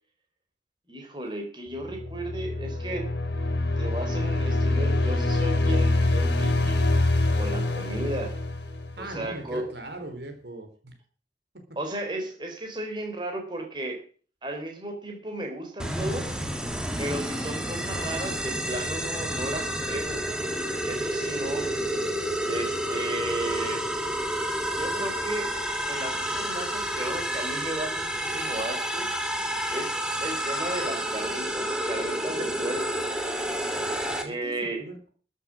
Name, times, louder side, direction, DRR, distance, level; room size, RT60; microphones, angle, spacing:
voice 1, 0.9-3.1 3.8-6.8 7.4-8.3 9.0-9.7 11.8-14.0 14.4-16.3 17.0-20.3 20.8-21.7 22.4-23.9 24.7-25.6 25.8-29.1 29.7-33.0 34.2-34.8, right 1 dB, 25° right, 2 dB, 3.9 m, -34 dB
sound 1, 1.9-9.2, left 2 dB, 70° left, 3.3 m, -25 dB
voice 2, 9.0-10.9 34.2-34.5 34.8-35.1, right 1 dB, 65° right, 5 dB, 3.6 m, -39 dB
sound 2, 15.8-34.2, right 1 dB, 5° right, 2.1 m, -30 dB
13.5 x 8.3 x 7.5 m, 0.41 s
head